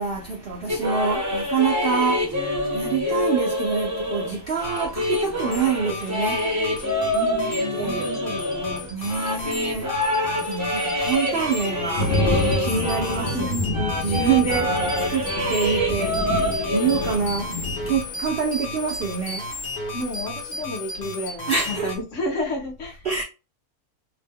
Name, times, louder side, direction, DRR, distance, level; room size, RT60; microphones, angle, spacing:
voice 1, 0.0-7.2 7.7-8.1 8.9-13.5 14.0-20.0 21.5-21.9 23.0-23.2, right 6 dB, 65° right, 0.5 m, -26 dB
sound 1, 0.7-13.5 13.7-17.1, left 1 dB, 20° right, 0.5 m, -26 dB
sound 2, 4.5-22.0, left 2 dB, 40° left, 0.7 m, -35 dB
sound 3, 5.0-5.1 7.6-7.7 8.1-8.2 9.8-18.0, left 2 dB, 75° left, 0.5 m, -29 dB
voice 2, 7.1-8.9 13.3-14.0 19.9-23.1, left 1 dB, 60° left, 1.0 m, -31 dB
2.8 x 2.0 x 3.5 m
omnidirectional pair, 1.6 m